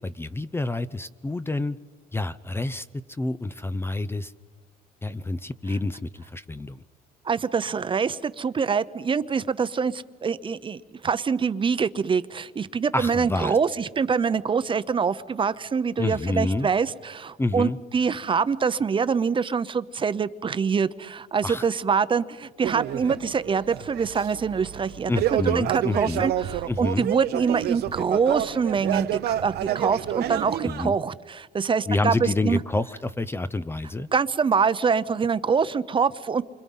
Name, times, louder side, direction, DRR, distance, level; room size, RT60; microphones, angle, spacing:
voice 1, 0.0-1.8 2.1-4.3 5.0-6.8 12.9-13.6 16.0-16.7 17.4-17.8 21.4-21.7 25.1-26.3 26.7-27.1 30.6-30.9 31.9-34.1, left 2 dB, 15° left, 14 dB, 0.6 m, -28 dB
voice 2, 7.3-32.6 34.1-36.4, right 6 dB, 30° right, 14 dB, 0.8 m, -25 dB
sound 1, 22.6-30.8, right 12 dB, 70° right, 0.9 m, -29 dB
28.0 x 25.5 x 5.6 m, 1.4 s
cardioid pair, 110°, 17 cm